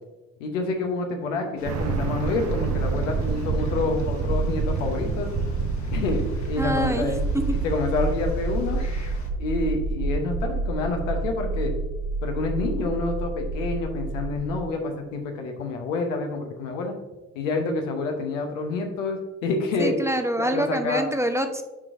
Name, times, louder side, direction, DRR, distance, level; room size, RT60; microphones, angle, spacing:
voice 1, 0.4-5.3 5.9-6.2 6.5-8.8 9.4-11.7 12.2-16.9 17.3-19.9 20.4-21.0, left 3 dB, 80° left, 3 dB, 0.9 m, -28 dB
sound 1, 1.6-9.3, left 1 dB, 45° left, 1.4 m, -43 dB
sound 2, 1.6-14.7, right 3 dB, 45° right, 0.6 m, -28 dB
voice 2, 6.6-7.4 19.8-21.6, right 1 dB, 5° right, 6 dB, 0.7 m, -26 dB
8.3 x 4.5 x 2.6 m, 1.1 s
figure-of-eight pair, 40°, 38 cm